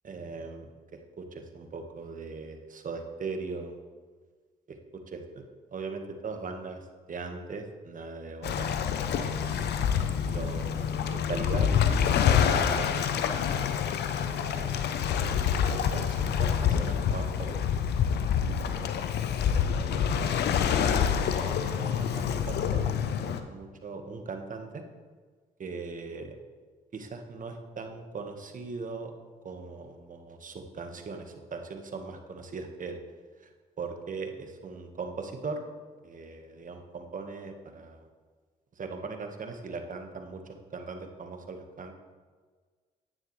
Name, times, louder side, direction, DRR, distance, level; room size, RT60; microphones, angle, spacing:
voice 1, 0.0-3.7 4.7-5.4 5.7-9.6 10.2-13.1 14.1-15.0 15.9-18.1 18.4-18.9 19.7-20.3 20.5-24.8 25.6-26.4 26.9-29.1 29.4-33.0 33.8-35.7 36.0-38.1 38.8-42.0, right 4 dB, 45° right, 5 dB, 1.3 m, -40 dB
Waves surf, 8.4-23.4, left 8 dB, 65° left, 0.7 m, -27 dB
10.0 x 9.0 x 3.2 m, 1.5 s
supercardioid pair, 50°, 18 cm